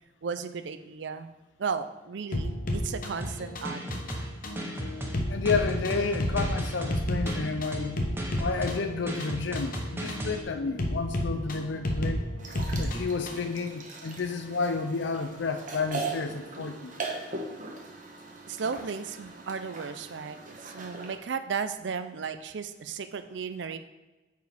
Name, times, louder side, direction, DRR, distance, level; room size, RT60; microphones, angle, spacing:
voice 1, 0.2-1.3 1.6-4.0 18.5-23.8, right 5 dB, 70° right, 11 dB, 0.5 m, -35 dB
sound 1, 2.3-13.5, left 1 dB, 50° left, 1.0 m, -32 dB
sound 2, 3.2-10.4, equal, 15° right, 0.9 m, -35 dB
voice 2, 5.3-8.0 8.4-12.2 12.8-16.9, left 4 dB, 70° left, 7 dB, 0.5 m, -31 dB
sound 3, 12.4-21.2, right 3 dB, 45° right, 1.1 m, -40 dB
9.2 x 4.8 x 3.4 m, 1.1 s
head